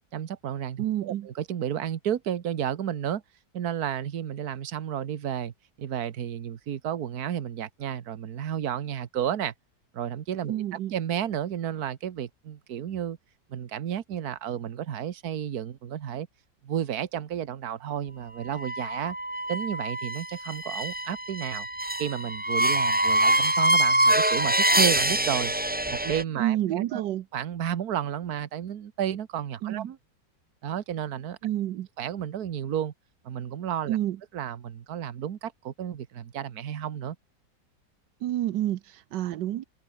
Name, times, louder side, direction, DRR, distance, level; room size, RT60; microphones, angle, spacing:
voice 1, 0.1-3.2 3.5-9.5 9.9-13.2 13.5-16.3 16.6-19.2 19.5-21.7 22.0-25.5 25.9-27.0 27.3-30.0 30.6-31.4 32.0-32.9 33.2-34.0 34.3-37.2, right 9 dB, 65° right, 1.6 m, -32 dB
voice 2, 0.8-1.3 10.5-10.9 26.4-27.2 29.6-29.9 31.4-31.9 33.9-34.2 38.2-39.6, right 13 dB, 85° right, 1.4 m, -29 dB
sound 1, 18.5-26.2, right 1 dB, 5° right, 0.8 m, -25 dB
omnidirectional pair, 1.8 m